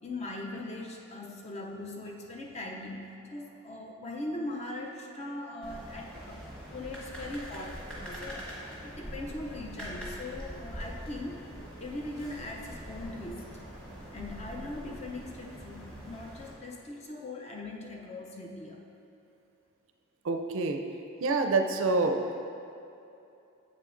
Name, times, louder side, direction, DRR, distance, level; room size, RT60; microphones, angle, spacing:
voice 1, 0.0-6.4 6.7-11.4 11.8-13.4 14.1-18.8, left 2 dB, 30° left, 0 dB, 0.5 m, -40 dB
sound 1, 5.6-16.5, equal, 5° left, 1.2 m, -43 dB
voice 2, 20.2-20.8 21.2-22.3, right 3 dB, 65° right, 5 dB, 0.4 m, -27 dB
7.6 x 6.5 x 2.5 m, 2.7 s
head